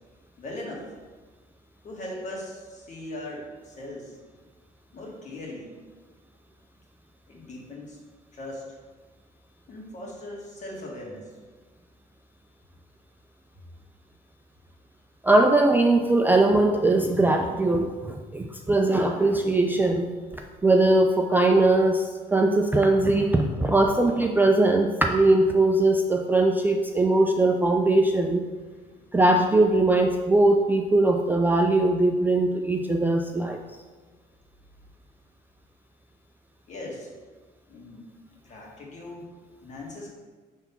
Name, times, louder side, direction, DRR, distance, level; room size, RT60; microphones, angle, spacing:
voice 1, 0.4-0.9 1.8-4.2 4.9-5.7 7.3-8.0 8.3-8.6 9.7-11.3 28.8-29.0 36.7-37.1 37.7-38.1 38.4-39.3 39.6-40.1, left 1 dB, 45° left, -2 dB, 1.9 m, -39 dB
voice 2, 15.2-20.0 20.6-28.5 29.1-33.6, right 2 dB, 10° right, 3 dB, 0.4 m, -21 dB
5.6 x 3.4 x 5.8 m, 1.4 s
cardioid pair, 110°, 17 cm